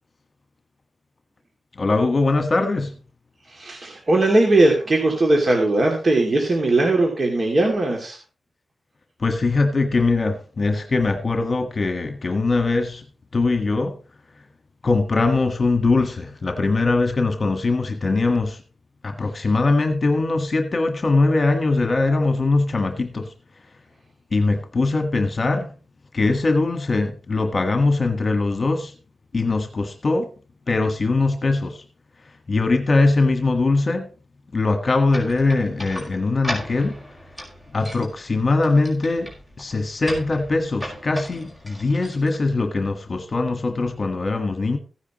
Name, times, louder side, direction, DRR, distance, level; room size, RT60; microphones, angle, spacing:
voice 1, 1.7-2.9 9.2-13.0 13.3-14.0 14.3-14.4 14.8-18.6 19.0-23.3 23.6-23.7 24.3-25.7 26.1-28.9 29.3-30.3 30.7-31.8 32.2-34.1 34.5-37.0 37.7-39.3 39.6-44.8, left 3 dB, 45° left, 1.6 m, -21 dB
voice 2, 3.5-8.2, right 2 dB, 45° right, 2.6 m, -19 dB
sound 1, 35.1-42.9, equal, 15° right, 5.1 m, -37 dB
16.0 x 9.9 x 3.1 m
wide cardioid pair, 100°, 0 cm